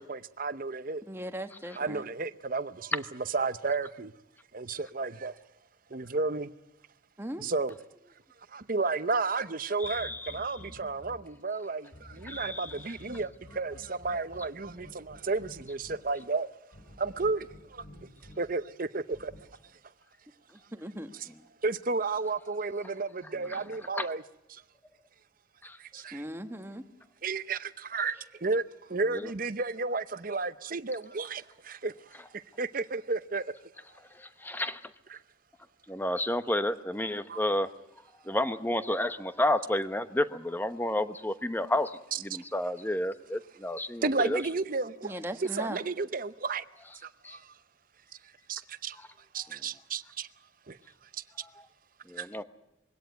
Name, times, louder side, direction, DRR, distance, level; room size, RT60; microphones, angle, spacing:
voice 1, 0.0-1.0 1.8-3.0 3.3-4.1 4.5-5.4 5.9-6.5 7.4-7.7 8.5-16.5 17.0-17.8 18.4-19.3 21.1-21.3 21.6-24.2 24.5-24.6 25.8-26.2 27.2-28.6 28.9-33.5 35.1-35.2 37.3-37.4 44.0-45.2 45.5-46.6 47.0-47.5 48.5-49.0 49.3-50.3 50.7-50.8 51.1-51.2 52.2-52.3, right 3 dB, 45° right, 0.8 m, -32 dB
voice 2, 1.0-2.0 7.2-7.5 20.5-21.1 26.1-26.8 45.0-45.8, right 1 dB, 10° right, 1.3 m, -38 dB
sound 1, 9.8-11.1 11.9-15.9 16.7-18.3 19.1-19.4, left 1 dB, 65° left, 7.2 m, -50 dB
voice 3, 9.8-10.6 12.3-12.9 23.5-23.6 23.9-24.1 25.6-25.8 29.1-29.3 34.1-34.9 35.9-37.7 38.2-44.4 47.2-47.4 49.0-49.1 51.4-51.5 52.1-52.4, left 1 dB, 10° left, 0.9 m, -31 dB
22.5 x 17.0 x 9.4 m
head